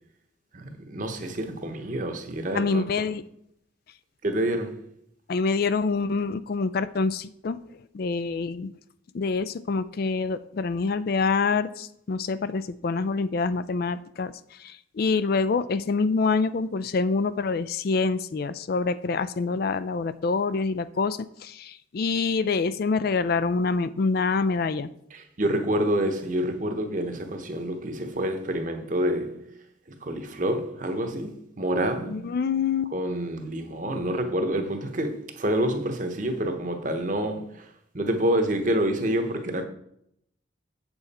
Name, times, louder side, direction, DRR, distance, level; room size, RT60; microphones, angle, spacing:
voice 1, 0.5-3.0 4.2-4.9 25.1-29.5 30.0-32.4 32.9-37.7 37.9-39.7, right 1 dB, 40° right, 1.0 m, -28 dB
voice 2, 2.5-3.2 5.3-7.6 7.9-8.7 9.1-24.9 32.1-32.9, left 4 dB, 50° left, 0.4 m, -26 dB
7.7 x 7.1 x 4.2 m
head